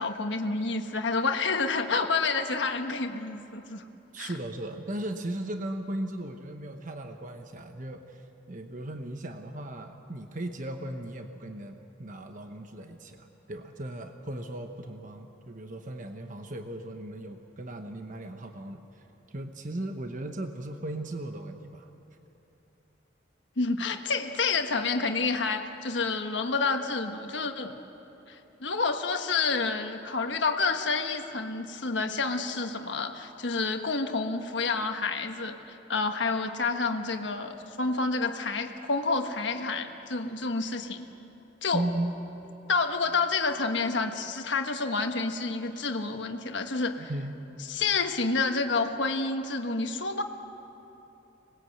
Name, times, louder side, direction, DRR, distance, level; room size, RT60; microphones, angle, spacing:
voice 1, 0.0-3.8 4.2-4.3 23.6-27.7 28.3-41.1 41.6-41.8 42.7-47.1 47.7-50.2, left 4 dB, 70° left, 5 dB, 1.4 m, -29 dB
voice 2, 4.1-8.2 8.5-21.9 41.7-42.1 47.0-47.6, right 1 dB, 45° right, 5 dB, 1.1 m, -37 dB
25.5 x 20.5 x 8.0 m, 3.0 s
head